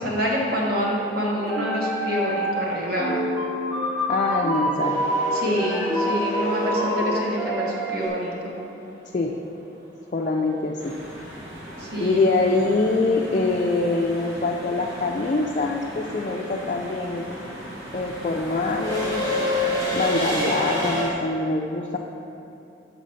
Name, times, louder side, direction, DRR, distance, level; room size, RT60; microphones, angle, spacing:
voice 1, 0.0-3.1 5.3-8.5 11.8-12.3, equal, 50° right, -3 dB, 1.3 m, -26 dB
sound 1, 1.4-2.7 3.0-8.1, equal, ahead, 0.7 m, -27 dB
voice 2, 4.1-5.0 9.1-9.4 10.1-10.9 12.0-17.3 17.9-19.3 19.9-22.0, left 3 dB, 40° left, -2 dB, 0.3 m, -24 dB
sound 2, 4.8-8.8 11.3-11.4 12.7-13.0 13.2-21.0, left 1 dB, 20° right, 1.5 m, -29 dB
sound 3, 10.8-21.1, equal, 75° right, 1.3 m, -38 dB
5.8 x 5.0 x 5.4 m, 2.7 s
head